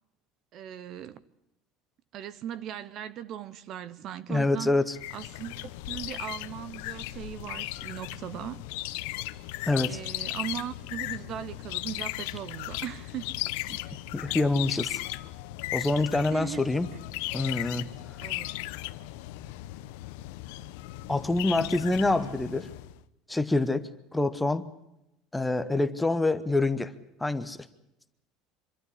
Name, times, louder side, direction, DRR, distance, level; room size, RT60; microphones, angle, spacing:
voice 1, 0.5-1.2 2.1-4.7 5.1-5.6 5.9-8.6 9.8-13.3 13.7-13.8 16.3-16.7 18.2-18.6, right 10 dB, 35° right, 0.7 m, -38 dB
voice 2, 4.3-5.0 9.7-10.0 14.1-15.0 15.7-16.9 17.3-17.9 21.1-22.7 23.3-24.7 25.3-26.9 27.2-27.6, left 2 dB, 5° left, 0.8 m, -26 dB
sound 1, 4.9-23.0, left 18 dB, 75° left, 0.9 m, -37 dB
25.0 x 12.5 x 9.9 m
cardioid pair, 180°, 0 cm